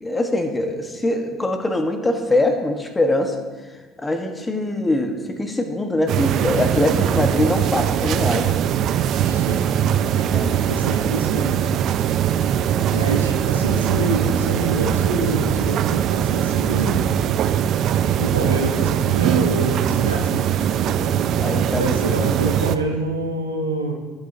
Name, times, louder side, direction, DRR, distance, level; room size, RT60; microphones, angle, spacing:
voice 1, 0.0-3.4 4.0-8.5 10.3-10.5 12.7-12.9 21.0-22.0, left 2 dB, 15° left, 6 dB, 1.3 m, -23 dB
sound 1, 6.1-22.8, right 10 dB, 50° right, 0.4 m, -21 dB
voice 2, 9.2-9.7 10.1-11.7 12.9-17.1 18.2-20.5 21.7-23.9, right 2 dB, 85° right, 1 dB, 1.0 m, -26 dB
17.5 x 7.7 x 2.8 m, 1.3 s
figure-of-eight pair, 55°, 0 cm